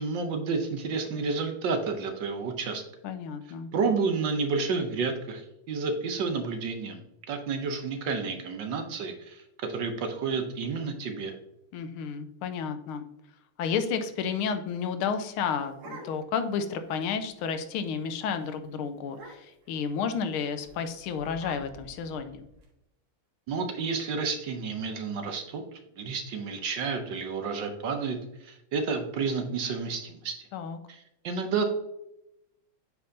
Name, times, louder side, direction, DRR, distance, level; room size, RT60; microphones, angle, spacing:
voice 1, 0.0-2.8 3.7-5.4 5.7-7.0 7.3-11.3 23.5-25.6 26.0-30.3 30.9-31.6, right 4 dB, 65° right, 5 dB, 1.4 m, -30 dB
voice 2, 3.0-3.7 11.7-13.0 13.6-22.5 30.5-30.8, left 6 dB, 90° left, 9 dB, 1.5 m, -31 dB
sound 1, 15.2-16.5 16.9-17.0 17.2-17.6 17.9-18.1 18.4-18.5 19.1-19.7 20.6-22.6, right 2 dB, 90° right, 2.3 m, -48 dB
8.7 x 4.8 x 2.7 m, 0.84 s
omnidirectional pair, 2.3 m